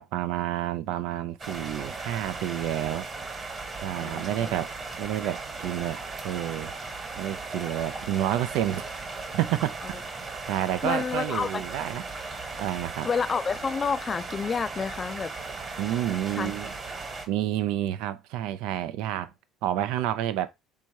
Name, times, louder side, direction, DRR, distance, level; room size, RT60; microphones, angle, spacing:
voice 1, 0.0-3.1 3.8-6.0 6.2-6.7 7.2-8.9 9.3-9.8 10.5-12.0 12.6-13.1 15.8-16.7 17.3-19.3 19.6-20.5, right 12 dB, 80° right, 0.5 m, -29 dB
sound 1, 1.4-17.3, right 3 dB, 30° right, 1.3 m, -37 dB
voice 2, 4.0-4.5 10.8-11.6 13.0-15.3 16.3-16.5, left 5 dB, 30° left, 0.4 m, -29 dB
3.6 x 2.8 x 4.5 m
cardioid pair, 105°, 0 cm